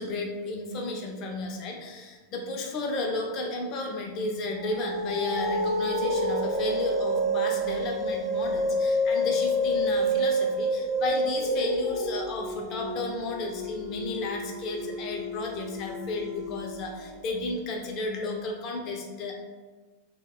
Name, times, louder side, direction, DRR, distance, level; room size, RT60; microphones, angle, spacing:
voice 1, 0.0-19.3, left 2 dB, 35° left, 1 dB, 0.6 m, -33 dB
sound 1, 4.5-17.3, equal, 25° right, 0.7 m, -29 dB
3.4 x 2.2 x 3.9 m, 1.3 s
figure-of-eight pair, 90°, 0 cm